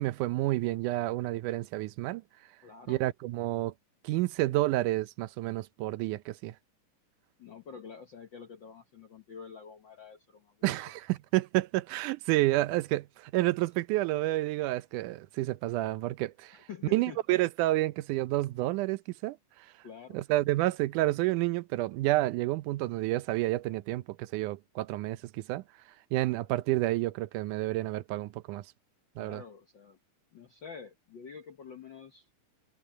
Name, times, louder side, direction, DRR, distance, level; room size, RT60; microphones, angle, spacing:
voice 1, 0.0-2.2 2.9-3.7 4.0-6.5 10.6-16.6 16.9-19.4 20.1-25.6 26.1-28.6 29.2-29.4, right 17 dB, 80° right, 2.0 m, -29 dB
voice 2, 2.6-3.0 7.4-10.9 16.5-17.2 19.8-20.2 29.2-30.0 30.3-32.3, left 6 dB, 70° left, 1.1 m, -47 dB
omnidirectional pair, 3.9 m